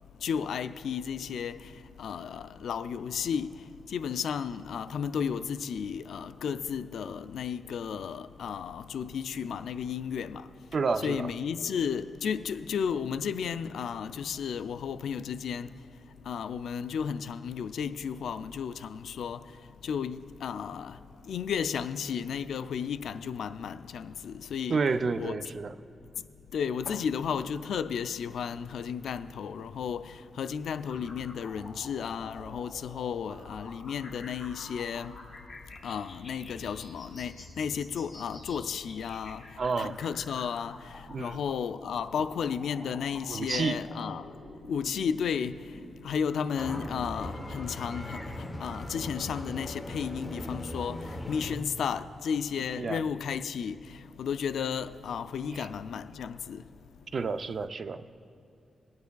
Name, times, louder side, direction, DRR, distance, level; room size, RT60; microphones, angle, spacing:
voice 1, 0.2-1.7 2.0-10.5 11.0-15.7 16.3-19.4 19.8-21.0 21.3-24.8 25.2-25.4 26.5-35.1 35.8-44.3 44.7-45.6 46.0-56.6, left 7 dB, 85° left, 0.3 m, -33 dB
voice 2, 10.7-11.3 24.7-25.7 39.6-40.0 41.1-41.4 43.3-43.8 52.8-53.0 55.5-55.7 57.1-58.1, right 4 dB, 45° right, 0.3 m, -30 dB
sound 1, 30.8-45.8, left 2 dB, 30° left, 2.9 m, -48 dB
sound 2, 46.6-51.6, left 1 dB, 10° left, 0.8 m, -39 dB
20.5 x 9.3 x 2.3 m
wide cardioid pair, 130°, 0 cm